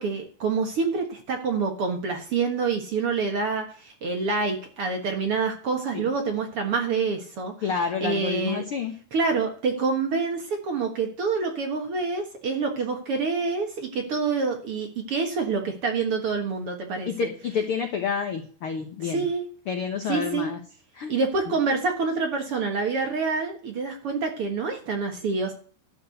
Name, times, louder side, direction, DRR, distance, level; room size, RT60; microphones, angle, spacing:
voice 1, 0.0-7.5 8.0-8.6 9.1-17.1 19.0-19.5 20.1-20.5 21.1-25.5, right 4 dB, 50° right, 3 dB, 1.9 m, -27 dB
voice 2, 7.6-9.0 17.1-19.3 19.7-20.6 20.9-21.1, left 6 dB, 80° left, 5 dB, 1.2 m, -29 dB
12.0 x 4.8 x 8.0 m, 0.43 s
omnidirectional pair, 4.2 m